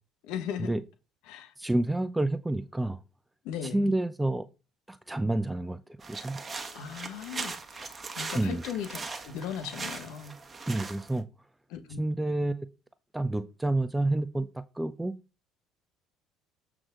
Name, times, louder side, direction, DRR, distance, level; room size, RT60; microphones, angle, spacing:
voice 1, 0.2-0.7 1.2-1.5 3.4-3.9 6.7-10.3 11.7-12.0, left 8 dB, 65° left, 1.2 m, -38 dB
voice 2, 1.6-3.0 3.7-4.5 4.9-5.8 6.1-6.4 8.3-8.6 10.7-11.3 12.0-12.7 13.1-15.1, right 2 dB, 10° right, 0.6 m, -29 dB
sound 1, 6.0-11.2, right 4 dB, 30° right, 1.3 m, -40 dB
7.7 x 6.1 x 3.8 m
figure-of-eight pair, 55°, 0 cm